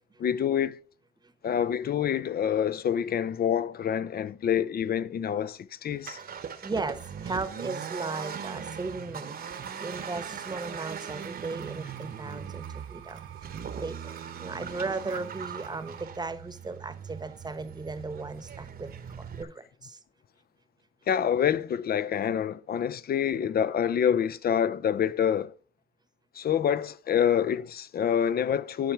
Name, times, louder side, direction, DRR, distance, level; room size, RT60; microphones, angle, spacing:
voice 1, 0.2-0.8 1.4-6.2 21.1-25.5 26.3-28.9, left 8 dB, 50° left, 0.6 m, -27 dB
Accelerating revving vroom, 5.9-19.4, right 7 dB, 50° right, 1.1 m, -40 dB
voice 2, 6.6-13.2 13.7-18.9 19.2-20.0, right 3 dB, 20° right, 1.0 m, -36 dB
sound 1, 9.3-16.1, right 11 dB, 75° right, 1.2 m, -49 dB
10.5 x 4.6 x 5.9 m
cardioid pair, 90°, 20 cm